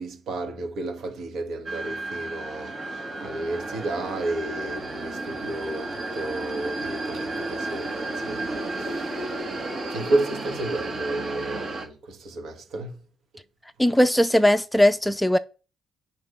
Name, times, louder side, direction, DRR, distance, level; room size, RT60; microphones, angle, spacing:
voice 1, 0.0-9.3 9.9-13.0, right 2 dB, 75° right, 2.1 m, -32 dB
sound 1, 1.7-11.9, right 2 dB, 50° right, 2.4 m, -33 dB
voice 2, 13.8-15.4, left 1 dB, 5° left, 0.5 m, -19 dB
8.2 x 5.2 x 5.5 m
cardioid pair, 90°, 0 cm